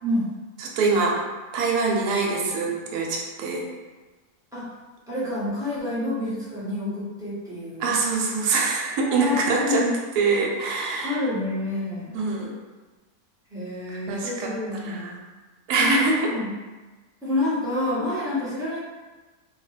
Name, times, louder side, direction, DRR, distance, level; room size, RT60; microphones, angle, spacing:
voice 1, 0.0-0.3 4.5-4.7 5.1-7.9 9.0-9.9 11.0-12.2 13.5-15.0 15.8-16.0 16.3-16.5 17.2-18.8, left 2 dB, 5° right, -12 dB, 0.7 m, -28 dB
voice 2, 0.6-1.2 1.5-3.6 7.8-9.8 10.2-11.2 12.1-12.5 13.9-14.5 14.8-15.2 15.7-16.3, right 3 dB, 85° right, -1 dB, 1.1 m, -24 dB
2.6 x 2.2 x 3.1 m, 1.2 s
omnidirectional pair, 1.6 m